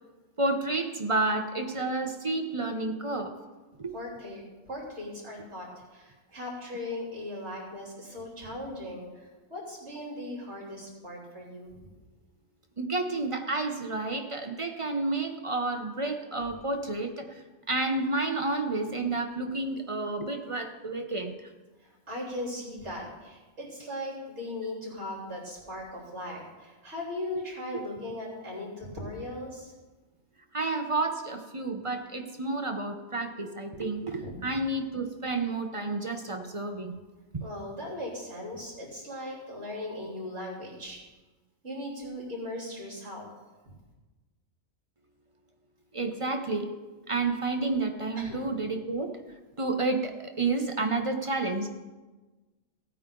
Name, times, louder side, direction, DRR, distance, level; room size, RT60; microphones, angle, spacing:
voice 1, 0.4-3.3 3.8-3.9 12.8-21.5 30.5-36.9 37.3-37.4 45.9-46.7 47.1-49.2 49.6-51.7, right 2 dB, 30° right, 5 dB, 0.7 m, -30 dB
voice 2, 3.9-4.4 4.7-11.7 22.1-29.7 34.2-34.4 37.4-41.0 41.6-43.3 48.2-48.4, left 1 dB, 55° right, -4 dB, 3.9 m, -38 dB
16.5 x 9.1 x 3.8 m, 1.2 s
omnidirectional pair, 1.4 m